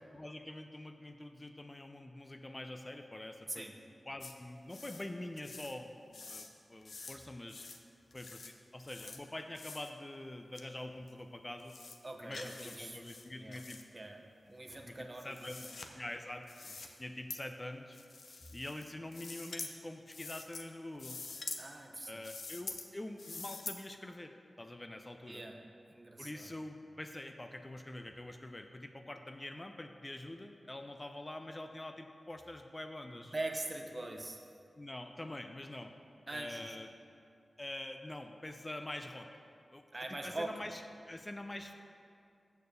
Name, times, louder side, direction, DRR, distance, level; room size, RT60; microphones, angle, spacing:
voice 1, 0.1-3.7 4.1-7.7 8.1-11.7 12.2-13.8 14.8-18.0 18.5-21.2 22.1-25.4 26.2-33.3 34.8-35.9 36.3-36.9 37.6-39.3 39.7-39.8 40.2-40.8 41.1-41.7, left 1 dB, 25° left, 6 dB, 0.5 m, -45 dB
sound 1, 4.2-4.3 4.7-5.1 5.4-5.8 6.1-6.5 6.8-7.2 7.5-7.8 8.1-8.5 8.8-9.2 9.5-9.9 10.6-10.7 11.1-11.2 11.6-12.0 12.3-12.8 13.0-13.8 14.7-15.9 16.5-16.9 17.3-17.4 17.9-18.8 19.1-19.7 20.1-20.6 21.0-21.6 22.2-22.9 23.2-23.8, left 4 dB, 75° left, 0.6 m, -46 dB
voice 2, 12.0-13.0 13.4-13.6 13.9-14.2 14.5-15.6 16.8-17.0 21.6-22.3 25.3-25.6 25.9-26.6 33.1-34.4 36.3-36.8 39.9-40.6, right 2 dB, 35° right, 3 dB, 0.9 m, -43 dB
6.8 x 6.5 x 6.7 m, 2.4 s
wide cardioid pair, 60°, 0 cm